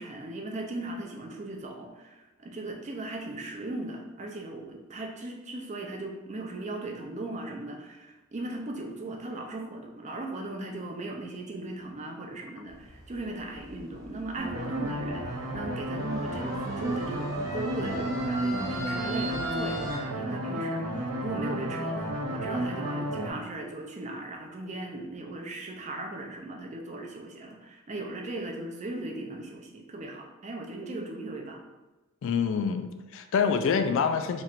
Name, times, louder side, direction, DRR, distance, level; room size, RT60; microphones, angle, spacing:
voice 1, 0.0-31.6, right 2 dB, 30° right, 1 dB, 0.5 m, -38 dB
sound 1, 12.7-20.0, right 1 dB, 15° right, 1.0 m, -40 dB
sound 2, 14.4-23.3, right 1 dB, 75° right, 0.7 m, -32 dB
voice 2, 32.2-34.4, left 6 dB, 60° left, 7 dB, 0.3 m, -26 dB
3.0 x 2.5 x 4.3 m, 1.1 s
head